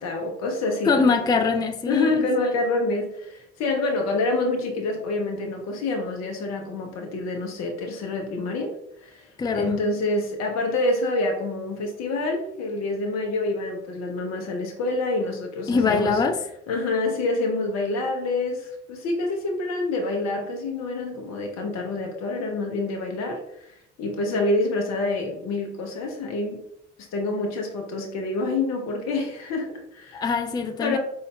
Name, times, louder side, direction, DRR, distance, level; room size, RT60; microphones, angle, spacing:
voice 1, 0.0-1.1 1.9-16.2 16.7-26.6 27.1-30.2 30.8-31.0, left 2 dB, 50° left, 3 dB, 0.7 m, -27 dB
voice 2, 0.9-2.3 9.4-9.7 15.7-16.4 30.1-31.0, left 4 dB, 15° left, 7 dB, 0.4 m, -23 dB
3.9 x 2.4 x 3.1 m, 0.75 s
figure-of-eight pair, 55°, 35 cm